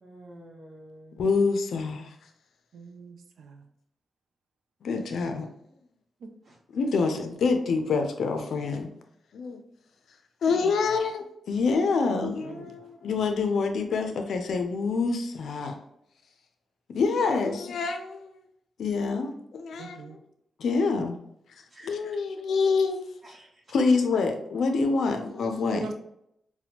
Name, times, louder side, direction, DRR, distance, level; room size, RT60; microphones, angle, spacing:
voice 1, 0.0-1.2 6.4-6.6 21.7-22.0 23.2-23.6, right 1 dB, 55° right, -6 dB, 0.8 m, -49 dB
voice 2, 1.2-2.1 4.8-5.5 6.7-8.9 9.3-9.6 10.4-15.8 16.9-18.4 18.8-20.2 20.6-21.2 21.8-23.0 23.7-25.8, left 4 dB, 75° left, 6 dB, 0.4 m, -26 dB
voice 3, 2.7-3.7 6.2-6.3 10.6-10.7 12.2-12.8 19.8-20.2 25.7-25.9, right 3 dB, 75° right, 6 dB, 0.4 m, -41 dB
4.2 x 2.2 x 2.8 m, 0.75 s
cardioid pair, 55°, 0 cm